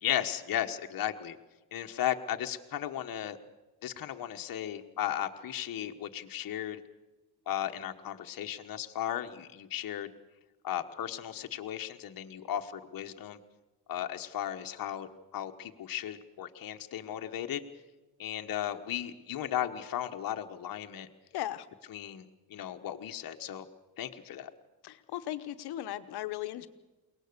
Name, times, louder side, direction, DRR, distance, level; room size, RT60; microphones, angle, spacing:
voice 1, 0.0-1.4 1.7-3.4 3.8-6.8 7.5-10.1 10.6-13.4 13.9-17.6 18.2-21.1 21.9-23.7 24.0-24.5, left 11 dB, 60° left, 6 dB, 1.2 m, -35 dB
voice 2, 21.3-21.7 24.8-26.7, left 13 dB, 80° left, 12 dB, 1.1 m, -37 dB
22.5 x 18.5 x 6.7 m, 1.1 s
cardioid pair, 80°, 38 cm